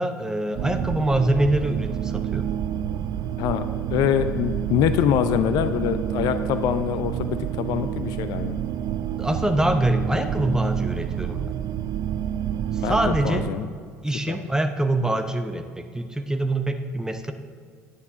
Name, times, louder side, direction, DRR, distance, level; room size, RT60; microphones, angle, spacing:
voice 1, 0.0-2.5 9.2-11.6 12.7-13.5 14.0-17.3, right 1 dB, 5° right, 7 dB, 0.8 m, -24 dB
sound 1, 0.5-13.5, right 10 dB, 50° right, 0.5 m, -28 dB
voice 2, 3.9-8.6 12.8-13.0 13.2-13.7 14.3-14.4, left 9 dB, 55° left, 11 dB, 0.5 m, -24 dB
10.0 x 9.5 x 3.7 m, 2.1 s
figure-of-eight pair, 60°, 8 cm